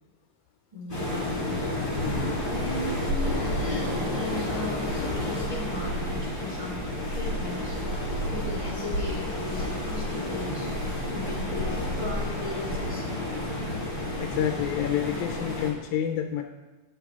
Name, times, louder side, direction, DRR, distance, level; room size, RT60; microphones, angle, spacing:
voice 1, 0.7-1.5 2.5-7.8 8.3-10.7 11.1-13.1, left 1 dB, 15° right, -5 dB, 1.0 m, -37 dB
Waves surf, 0.9-15.7, left 1 dB, 20° left, 1.6 m, -30 dB
voice 2, 14.2-16.4, left 10 dB, 80° left, 5 dB, 1.9 m, -28 dB
8.6 x 7.4 x 3.5 m, 1.1 s
omnidirectional pair, 3.6 m